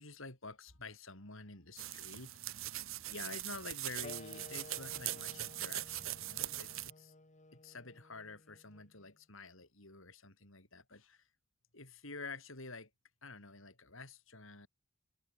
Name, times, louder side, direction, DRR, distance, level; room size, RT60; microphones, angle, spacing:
voice 1, 0.0-2.7 3.1-7.1 7.5-11.3 11.7-12.9 13.2-14.7, left 3 dB, 65° left, 5.7 m, -49 dB
sound 1, 1.8-6.9, right 14 dB, 65° right, 1.4 m, -41 dB
sound 2, 4.0-9.1, left 2 dB, 30° left, 1.5 m, -55 dB
head